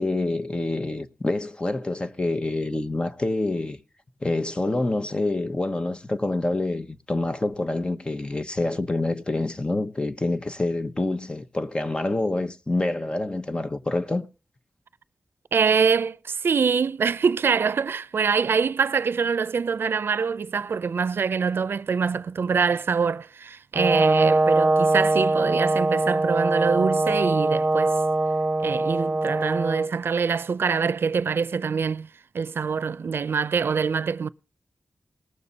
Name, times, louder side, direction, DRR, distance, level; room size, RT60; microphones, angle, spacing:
voice 1, 0.0-3.8 4.2-14.3, left 2 dB, 25° left, 1.0 m, -27 dB
voice 2, 15.5-28.0 28.6-32.1 32.3-34.3, right 5 dB, 80° right, 0.5 m, -24 dB
Brass instrument, 23.7-29.9, right 2 dB, 20° right, 1.3 m, -22 dB
19.5 x 6.9 x 4.1 m
wide cardioid pair, 95°, 4 cm